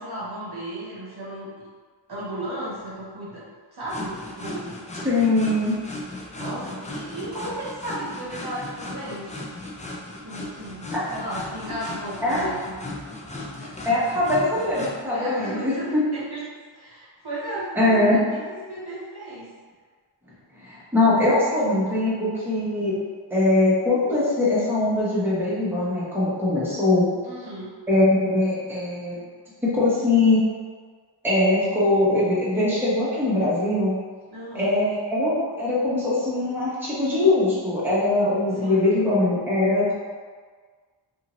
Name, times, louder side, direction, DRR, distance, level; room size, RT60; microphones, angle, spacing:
voice 1, 0.0-1.5 2.1-3.4 3.7-4.7 6.4-9.4 10.2-12.6 13.6-13.7 14.2-14.4 15.1-16.4 16.7-19.5 27.2-27.7 34.3-34.7 38.5-39.1, right 1 dB, 55° right, -7 dB, 0.9 m, -35 dB
sound 1, 3.9-14.9, left 2 dB, 15° left, 0.4 m, -36 dB
voice 2, 5.0-5.7 12.2-12.5 13.8-16.0 17.7-18.2 20.6-22.9 23.3-27.1 27.9-29.2 29.6-30.4 31.2-33.9 34.5-39.9, left 2 dB, 5° right, -9 dB, 1.0 m, -21 dB
2.7 x 2.5 x 2.9 m, 1.6 s
wide cardioid pair, 70°, 47 cm